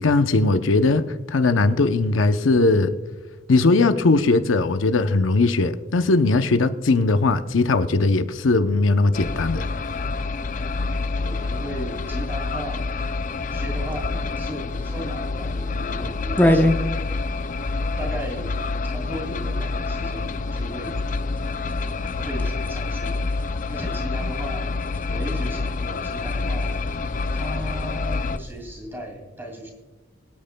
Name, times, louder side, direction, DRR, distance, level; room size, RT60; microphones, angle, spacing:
voice 1, 0.0-2.9 3.5-9.7, left 3 dB, 80° left, 9 dB, 0.7 m, -19 dB
sound 1, 9.1-28.4, left 3 dB, 40° left, 0.4 m, -27 dB
voice 2, 11.2-13.1 13.5-16.8 18.0-18.6 18.8-21.0 22.1-29.7, equal, 10° right, 1 dB, 2.4 m, -36 dB
sound 2, 13.7-28.7, left 1 dB, 10° left, 0.7 m, -30 dB
23.5 x 8.6 x 2.2 m, 1.2 s
head